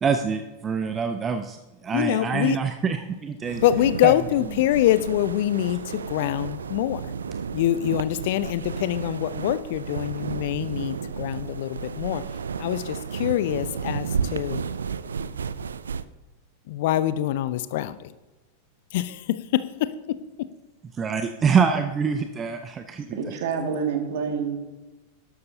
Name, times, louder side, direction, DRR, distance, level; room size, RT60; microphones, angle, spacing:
voice 1, 0.0-1.6 1.8-3.6 4.0-4.1 21.0-23.2, right 6 dB, 20° right, 8 dB, 0.6 m, -25 dB
voice 2, 1.9-2.6 3.6-7.1 7.5-12.2 12.6-14.6 16.7-18.1 18.9-20.2, left 13 dB, 50° left, 15 dB, 0.5 m, -25 dB
sound 1, 3.4-16.0, right 6 dB, 70° right, 0.4 m, -32 dB
voice 3, 23.1-24.6, right 6 dB, 55° right, 4 dB, 2.0 m, -27 dB
12.5 x 12.0 x 2.8 m, 1.1 s
figure-of-eight pair, 90°, 0 cm